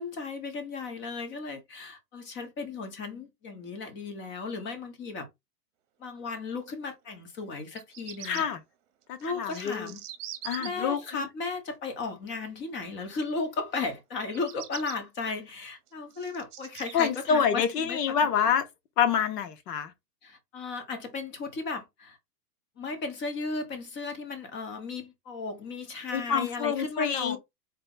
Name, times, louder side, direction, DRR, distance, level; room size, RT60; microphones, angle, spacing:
voice 1, 0.0-5.3 6.0-8.5 9.2-10.0 10.6-18.1 20.2-22.2 22.8-27.4, left 4 dB, 20° left, 1.0 m, -35 dB
Bird vocalization bird call bird song, 7.6-8.4 9.2-10.7 14.2-15.0 15.6-17.1, right 12 dB, 45° right, 0.9 m, -42 dB
voice 2, 8.2-8.6 9.1-9.9 10.4-11.3 16.9-18.7 19.0-19.9 26.1-27.4, left 7 dB, 75° left, 1.1 m, -27 dB
4.1 x 2.2 x 3.9 m
hypercardioid pair, 140°, 48 cm